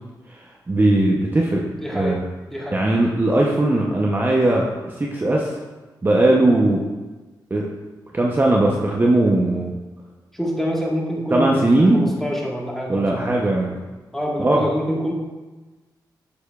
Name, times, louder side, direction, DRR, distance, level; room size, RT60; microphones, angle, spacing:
voice 1, 0.7-1.6 1.9-2.2 2.7-4.6 5.0-5.5 6.0-6.8 7.5-7.7 8.1-9.7 11.3-12.0 12.9-13.8 14.4-14.6, right 2 dB, 25° right, -2 dB, 0.6 m, -18 dB
voice 2, 1.8-2.2 2.5-2.8 6.3-6.5 10.3-13.3 14.1-15.1, equal, 5° left, -3 dB, 1.4 m, -26 dB
6.9 x 6.7 x 2.3 m, 1.2 s
cardioid pair, 80°, 8 cm